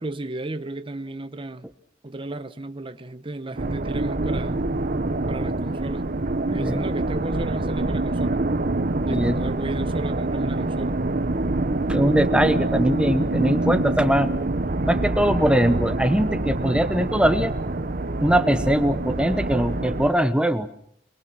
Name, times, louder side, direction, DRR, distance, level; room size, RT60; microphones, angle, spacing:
voice 1, 0.0-1.7 2.0-4.7 5.3-6.1 6.5-8.4 9.0-11.0, right 2 dB, 30° right, 0.9 m, -34 dB
sound 1, 3.6-20.1, right 2 dB, 50° right, 1.1 m, -25 dB
voice 2, 6.5-6.8 9.1-9.4 11.9-14.3 14.8-17.5 18.2-20.7, right 1 dB, 5° right, 1.2 m, -21 dB
24.0 x 22.5 x 6.2 m
head